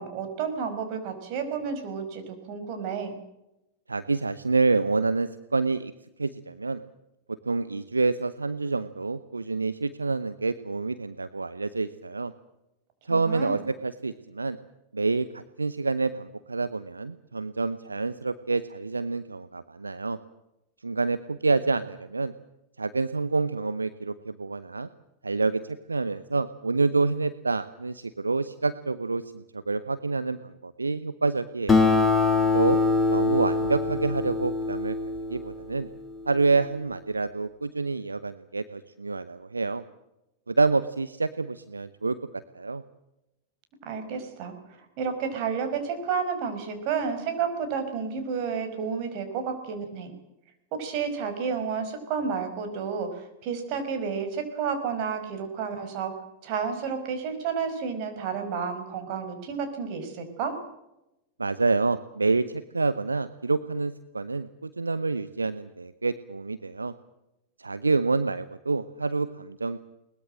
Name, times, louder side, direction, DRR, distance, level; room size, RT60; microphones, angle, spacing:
voice 1, 0.0-3.2 13.1-13.6 43.8-50.1 50.7-56.1 56.4-60.6, right 6 dB, 45° right, 7 dB, 5.3 m, -31 dB
voice 2, 3.9-5.9 6.2-6.8 7.5-12.3 13.1-14.6 14.9-20.2 20.8-22.3 22.8-24.9 25.2-25.6 25.9-31.9 32.5-32.8 33.1-35.9 36.2-39.8 40.5-42.2 42.5-42.8 61.4-66.9 67.6-69.8, right 3 dB, 80° right, 13 dB, 0.8 m, -27 dB
Acoustic guitar, 31.7-36.5, left 3 dB, 15° left, 3.0 m, -24 dB
21.5 x 20.5 x 7.6 m, 0.91 s
figure-of-eight pair, 90°, 0 cm